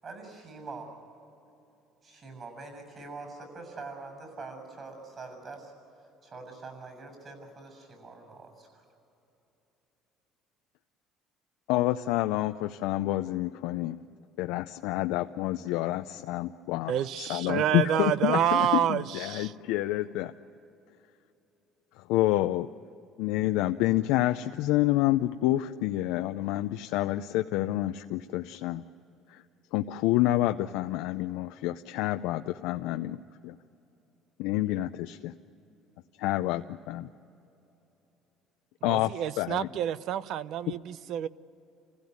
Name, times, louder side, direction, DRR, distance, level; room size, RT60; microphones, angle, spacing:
voice 1, 0.0-0.9 2.0-5.7 6.2-8.8, right 3 dB, 35° right, 6.9 m, -44 dB
voice 2, 11.7-14.0 14.4-20.3 22.0-22.7 23.2-28.8 29.3-29.4 29.7-33.2 33.4-33.6 34.4-35.3 36.2-37.0 38.8-39.7 40.7-40.8, left 16 dB, 90° left, 0.5 m, -28 dB
voice 3, 16.9-19.5 38.8-41.3, right 11 dB, 65° right, 0.7 m, -28 dB
28.0 x 16.0 x 9.6 m
cardioid pair, 125°, 0 cm